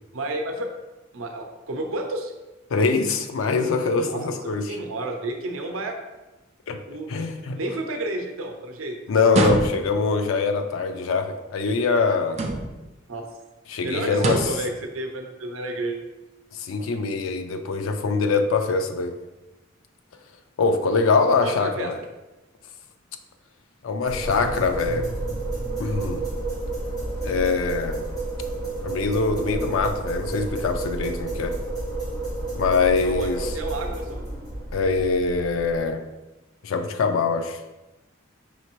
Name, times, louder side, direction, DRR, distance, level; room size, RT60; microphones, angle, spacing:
voice 1, 0.1-0.7 1.1-2.3 4.0-4.2 4.7-6.0 6.9-7.1 7.6-9.0 13.1-13.3 13.8-16.0 21.4-21.9 33.0-34.3, right 1 dB, 90° right, 4 dB, 0.6 m, -31 dB
voice 2, 2.7-4.8 6.7-6.8 7.1-7.6 9.1-12.4 13.7-14.5 16.5-19.2 20.6-22.0 23.8-25.1 25.8-26.3 27.2-28.1 28.8-31.5 32.5-33.5 34.7-36.0 36.6-37.6, left 4 dB, 85° left, 7 dB, 0.4 m, -23 dB
sound 1, 9.3-10.1 12.3-12.9 14.1-14.7, right 2 dB, 35° right, 0.4 m, -25 dB
sound 2, 24.1-35.8, right 2 dB, 20° left, 1.3 m, -30 dB
5.5 x 3.2 x 3.0 m, 1.1 s
head